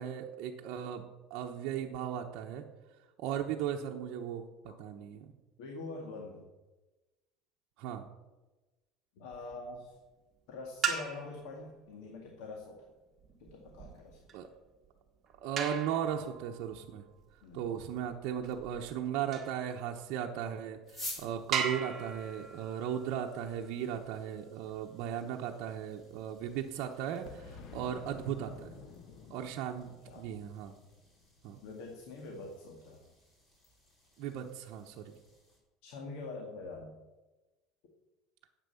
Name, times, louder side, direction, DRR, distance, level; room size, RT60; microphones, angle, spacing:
voice 1, 0.0-2.6 3.2-5.3 7.8-8.1 14.3-14.5 15.4-17.0 17.5-28.8 29.3-30.7 31.4-31.6 34.2-35.1, right 9 dB, 55° right, 1 dB, 0.9 m, -37 dB
voice 2, 5.6-6.5 9.2-9.9 10.5-12.9 13.4-14.2 17.4-17.7 30.1-30.3 31.6-33.1 35.8-36.9, left 3 dB, 75° left, 1 dB, 2.0 m, -44 dB
sound 1, 9.3-9.8 10.7-11.5 13.2-19.6 20.3-20.4 20.9-21.0 21.5-24.2 26.3-27.3, right 7 dB, 25° right, 1.7 m, -39 dB
sound 2, 20.8-35.6, left 1 dB, 25° left, 3.9 m, -53 dB
Boom, 27.3-31.9, left 5 dB, 45° left, 1.3 m, -52 dB
10.0 x 8.3 x 7.0 m, 1.1 s
cardioid pair, 160°, 0 cm